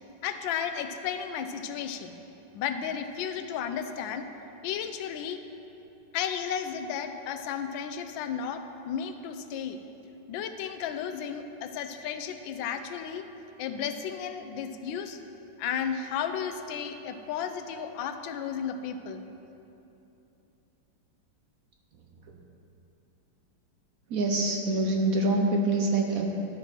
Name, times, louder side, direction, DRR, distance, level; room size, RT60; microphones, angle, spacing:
voice 1, 0.2-2.2 2.5-4.3 4.6-5.4 6.1-9.8 10.3-13.3 13.6-15.2 15.6-19.2, left 8 dB, 85° left, 8 dB, 1.3 m, -33 dB
voice 2, 24.1-26.3, right 2 dB, 65° right, 1 dB, 0.9 m, -25 dB
11.5 x 5.9 x 4.4 m, 2.9 s
omnidirectional pair, 2.1 m